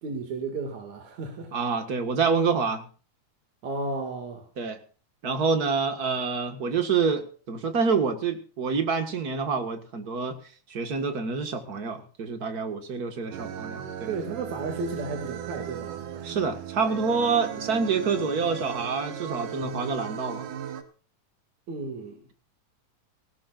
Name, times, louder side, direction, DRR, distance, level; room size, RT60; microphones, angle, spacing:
voice 1, 0.0-1.5 3.6-4.5 14.1-16.0 21.7-22.3, right 3 dB, 65° right, 3.4 m, -33 dB
voice 2, 1.5-2.8 4.6-4.8 5.2-10.4 10.7-14.1 16.2-20.5, right 5 dB, 35° right, 1.7 m, -27 dB
sound 1, 13.3-20.8, right 9 dB, 80° right, 2.8 m, -37 dB
18.5 x 17.5 x 2.5 m
omnidirectional pair, 3.6 m